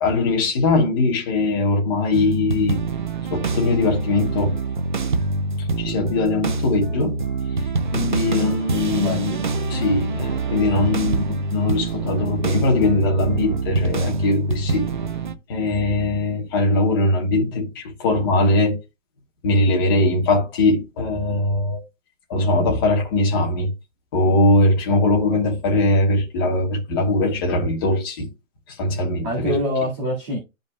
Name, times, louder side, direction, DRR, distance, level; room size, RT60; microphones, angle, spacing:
voice 1, 0.0-2.8 3.3-4.6 5.8-7.2 7.9-9.4 9.7-14.9 15.5-18.8 19.4-21.8 22.3-23.7 24.1-28.3 28.7-29.6, left 2 dB, 15° left, 1.2 m, -21 dB
sound 1, 2.1-15.3, right 3 dB, 40° right, 0.4 m, -25 dB
voice 2, 8.9-9.5 29.2-30.4, equal, 20° right, 2.0 m, -25 dB
12.5 x 5.2 x 2.2 m
hypercardioid pair, 175°, 40 cm